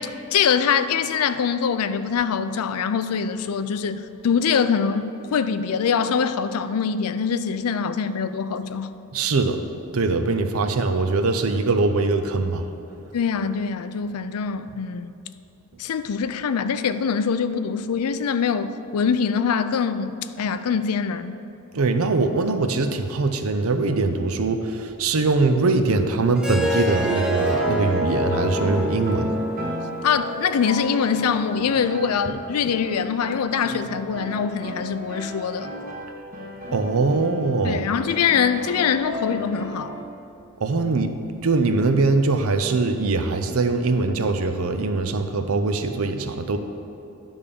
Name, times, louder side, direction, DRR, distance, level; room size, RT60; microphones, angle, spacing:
voice 1, 0.0-8.9 13.1-15.1 15.8-20.1 20.4-21.4 30.0-35.7 37.6-39.9, left 6 dB, 80° left, 11 dB, 0.4 m, -23 dB
voice 2, 9.1-9.6 9.9-12.6 21.7-29.4 36.7-37.9 40.6-41.1 41.4-46.6, right 3 dB, 70° right, 7 dB, 0.6 m, -22 dB
Harp, 26.4-31.5, right 1 dB, 5° right, 0.6 m, -27 dB
sound 1, 26.6-40.0, left 1 dB, 40° right, 1.2 m, -34 dB
10.5 x 3.5 x 6.7 m, 2.9 s
head